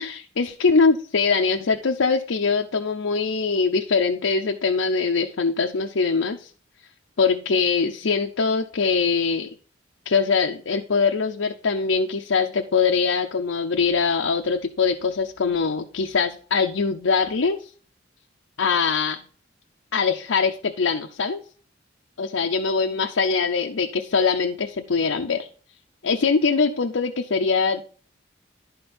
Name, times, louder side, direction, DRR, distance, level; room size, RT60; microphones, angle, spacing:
voice 1, 0.0-6.5 7.2-9.5 10.1-17.7 18.6-19.2 19.9-21.4 22.2-25.5 26.0-27.8, left 5 dB, 90° left, 3 dB, 0.7 m, -22 dB
11.0 x 4.4 x 5.2 m, 0.42 s
head